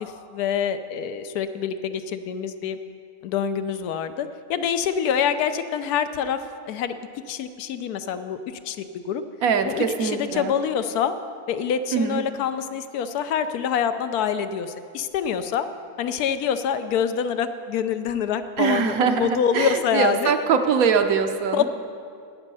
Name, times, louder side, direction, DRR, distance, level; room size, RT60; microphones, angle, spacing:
voice 1, 0.0-2.8 3.2-6.4 6.7-6.9 7.3-8.4 8.7-8.8 9.1-9.2 9.6-11.1 11.5-15.7 16.0-20.3 21.5-21.7, left 8 dB, 85° left, 10 dB, 1.1 m, -26 dB
voice 2, 9.4-10.5 11.9-12.2 18.6-21.6, right 6 dB, 70° right, 7 dB, 1.1 m, -22 dB
11.5 x 8.9 x 5.4 m, 2.3 s
omnidirectional pair, 1.6 m